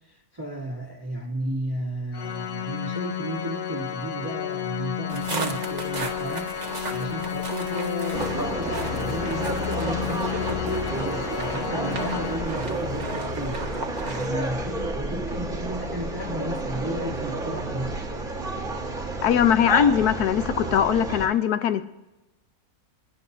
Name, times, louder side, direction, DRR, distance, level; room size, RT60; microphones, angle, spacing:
voice 1, 0.1-17.9, right 1 dB, 15° right, -2 dB, 1.4 m, -34 dB
Organ, 2.1-12.9, left 10 dB, 60° left, 0.6 m, -32 dB
sound 1, 5.1-14.3, right 3 dB, 30° right, 1.1 m, -35 dB
sound 2, 8.1-21.3, right 1 dB, 55° right, 2.0 m, -31 dB
voice 2, 19.2-21.8, left 9 dB, 90° left, 11 dB, 1.3 m, -21 dB
23.0 x 10.5 x 2.7 m, 1.0 s
omnidirectional pair, 1.6 m